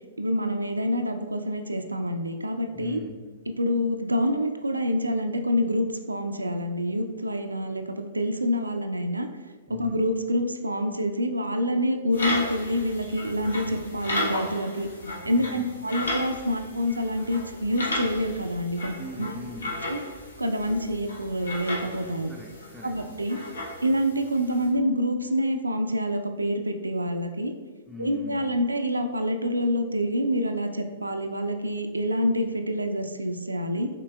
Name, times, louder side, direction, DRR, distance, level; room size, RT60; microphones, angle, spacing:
voice 1, 0.2-3.0 3.6-9.3 9.7-14.9 15.2-19.3 19.9-20.0 20.4-22.3 22.8-23.4 23.8-27.5 28.0-33.9, equal, 90° right, 5 dB, 0.3 m, -27 dB
voice 2, 2.7-3.2 9.7-10.0 15.3-15.8 19.0-19.9 22.3-23.0 27.9-28.6, left 3 dB, 5° right, 0 dB, 0.5 m, -41 dB
sound 1, 12.1-24.7, left 1 dB, 75° left, 0.9 m, -35 dB
5.6 x 3.2 x 2.3 m, 1.4 s
figure-of-eight pair, 110°, 0 cm